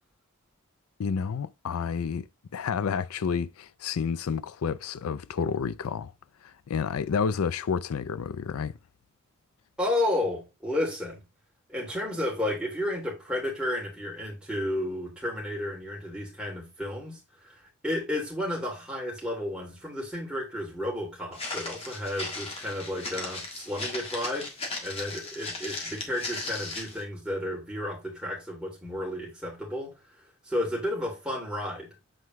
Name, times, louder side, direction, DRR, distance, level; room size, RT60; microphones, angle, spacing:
voice 1, 1.0-2.3 2.5-6.1 6.4-8.8, left 6 dB, 90° left, 0.4 m, -30 dB
voice 2, 9.8-11.2 11.7-24.5 24.8-29.9 30.4-32.0, left 1 dB, 5° right, 3.0 m, -32 dB
Walk footsteps, 21.3-27.0, left 3 dB, 30° left, 1.5 m, -37 dB
7.8 x 4.6 x 3.1 m
head